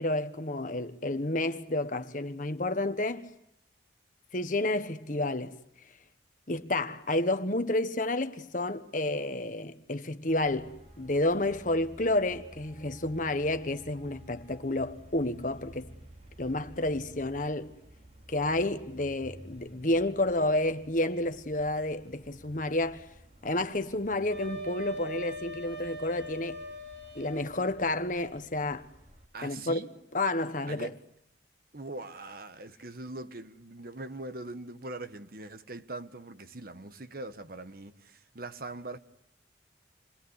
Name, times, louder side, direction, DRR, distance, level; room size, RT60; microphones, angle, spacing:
voice 1, 0.0-3.3 4.3-5.6 6.5-15.9 16.4-17.7 18.3-23.1 23.4-26.6 27.1-28.9 29.4-29.8 30.1-30.9, left 2 dB, 45° left, 1.3 m, -30 dB
Traffic noise roadway noise, 10.3-29.3, right 1 dB, 35° right, 4.1 m, -53 dB
Wind instrument woodwind instrument, 24.3-27.5, equal, 75° right, 7.2 m, -41 dB
voice 2, 29.3-29.9 30.7-31.0 31.7-39.0, right 2 dB, 50° right, 1.3 m, -41 dB
28.0 x 21.0 x 8.1 m
head